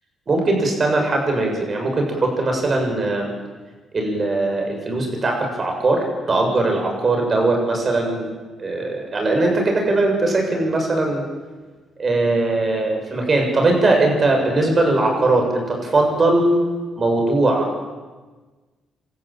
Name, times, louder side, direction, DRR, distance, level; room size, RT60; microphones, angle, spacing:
voice 1, 0.3-3.3 3.9-8.3 8.6-11.2 12.0-16.5 17.0-17.7, right 2 dB, 35° right, 2 dB, 7.5 m, -20 dB
28.0 x 14.0 x 9.2 m, 1.3 s
cardioid pair, 90°, 0 cm